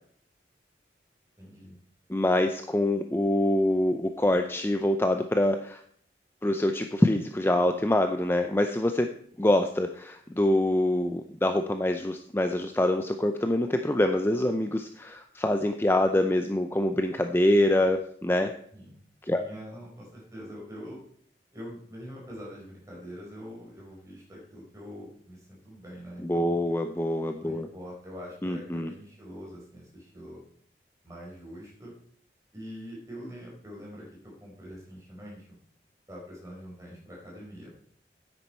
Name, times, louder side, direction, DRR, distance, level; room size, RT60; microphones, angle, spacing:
voice 1, 1.4-1.8 18.7-18.9 19.3-21.0 21.5-26.6 27.4-30.4 31.0-31.9 32.5-35.6 36.1-37.7, equal, 20° right, -3 dB, 4.5 m, -44 dB
voice 2, 2.1-5.8 6.4-9.1 9.4-18.5 19.2-19.4 26.2-27.7 28.4-28.9, left 1 dB, 15° left, 6 dB, 0.5 m, -25 dB
9.7 x 9.3 x 4.4 m, 0.63 s
head